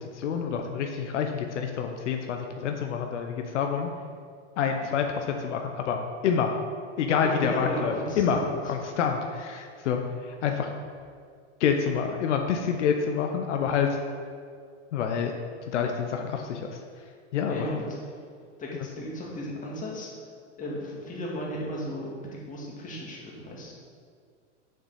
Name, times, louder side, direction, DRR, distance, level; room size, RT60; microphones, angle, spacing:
voice 1, 0.0-3.9 4.6-6.5 7.0-10.7 11.6-14.0 14.9-15.3 15.7-16.8 17.3-17.8, left 7 dB, 75° left, 4 dB, 0.9 m, -27 dB
voice 2, 7.2-8.6 17.5-17.9 18.6-20.1 20.6-23.7, equal, 20° left, -3 dB, 2.1 m, -35 dB
7.1 x 6.0 x 5.6 m, 2.2 s
hypercardioid pair, 115°, 36 cm